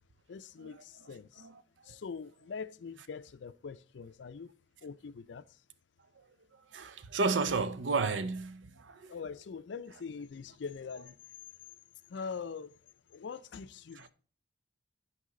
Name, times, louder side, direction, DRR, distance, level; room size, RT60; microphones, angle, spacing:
voice 1, 0.3-1.5 1.8-4.5 4.8-5.6 9.1-11.2 12.1-12.8 13.1-14.1, left 5 dB, 70° left, 0.4 m, -43 dB
voice 2, 6.7-9.1 14.0-14.1, right 4 dB, 85° right, 0.6 m, -32 dB
11.5 x 4.8 x 3.7 m
head